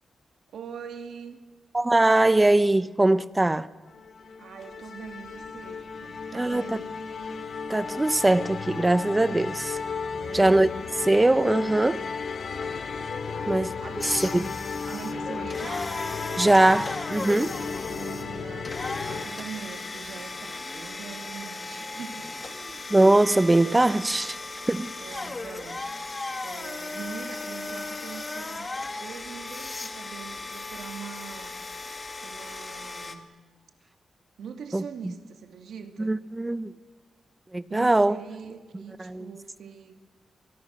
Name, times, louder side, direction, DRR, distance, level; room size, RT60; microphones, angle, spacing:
voice 1, 0.5-1.4 4.4-6.9 10.1-10.6 13.2-14.5 14.9-15.9 17.9-22.9 25.0-31.6 32.2-33.3 34.4-36.2 37.7-40.0, right 6 dB, 85° right, 2.5 m, -43 dB
voice 2, 1.7-3.7 6.3-6.8 7.7-9.8 10.3-10.7 11.0-12.0 13.5-13.7 14.3-14.4 16.4-17.5 22.9-24.4 24.7-24.9 34.7-35.1 36.0-36.7 37.5-38.2 39.0-39.3, right 2 dB, 15° right, 0.8 m, -21 dB
sound 1, 3.9-19.3, left 5 dB, 60° left, 2.5 m, -34 dB
sound 2, 14.0-33.2, left 3 dB, 30° left, 1.9 m, -36 dB
29.5 x 25.0 x 6.7 m
cardioid pair, 100°, 0 cm